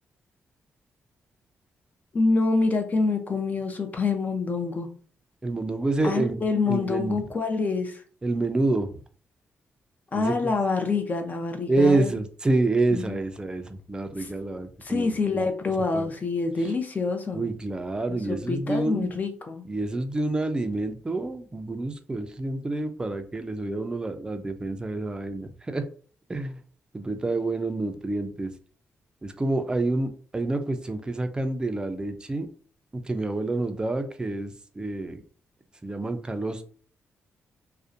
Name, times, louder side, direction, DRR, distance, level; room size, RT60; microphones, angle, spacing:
voice 1, 2.1-4.9 6.0-8.0 10.1-12.2 12.9-13.2 14.2-14.3 14.8-17.5 18.1-19.6, left 3 dB, 35° left, 5 dB, 0.5 m, -26 dB
voice 2, 5.4-7.2 8.2-8.9 10.1-10.5 11.7-15.5 15.9-16.1 17.3-19.1 19.7-25.8 26.3-26.6 26.9-28.5 29.2-32.5 33.0-35.2 35.8-36.6, right 2 dB, 20° right, 7 dB, 0.4 m, -28 dB
2.5 x 2.1 x 2.5 m, 0.43 s
cardioid pair, 95°, 5 cm